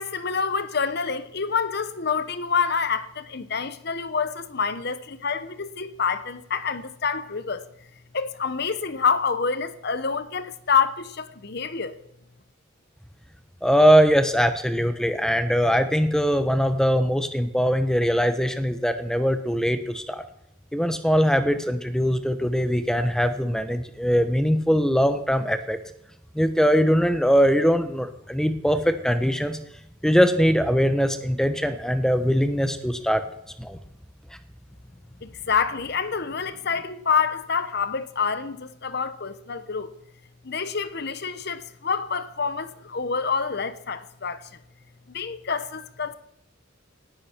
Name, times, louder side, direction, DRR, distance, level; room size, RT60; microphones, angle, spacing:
voice 1, 0.0-7.6 8.1-12.0 35.2-39.9 40.4-44.5 45.1-46.1, left 5 dB, 55° left, 1.0 m, -27 dB
voice 2, 13.6-20.2 20.7-25.8 26.3-29.6 30.0-33.2 33.6-33.8, equal, 5° left, 1.1 m, -21 dB
18.5 x 13.5 x 4.5 m
head